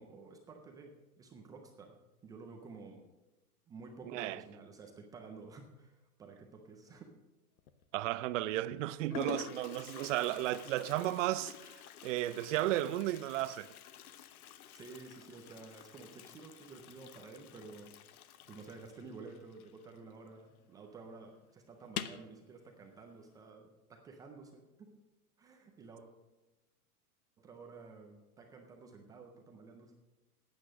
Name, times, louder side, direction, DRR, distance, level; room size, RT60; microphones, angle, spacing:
voice 1, 0.0-2.0 2.2-3.0 3.7-7.1 14.7-17.9 18.5-25.0 25.4-26.1 27.4-29.9, right 4 dB, 10° right, 0.3 m, -52 dB
Toilet flush, 7.6-8.1 8.8-8.9 9.1-20.4 20.6-20.7 21.1-21.2 21.8-22.3, left 10 dB, 70° left, 1.0 m, -48 dB
voice 2, 7.9-11.7 12.0-13.7, right 15 dB, 55° right, 0.6 m, -34 dB
11.5 x 8.9 x 6.3 m
hypercardioid pair, 135°, 45 cm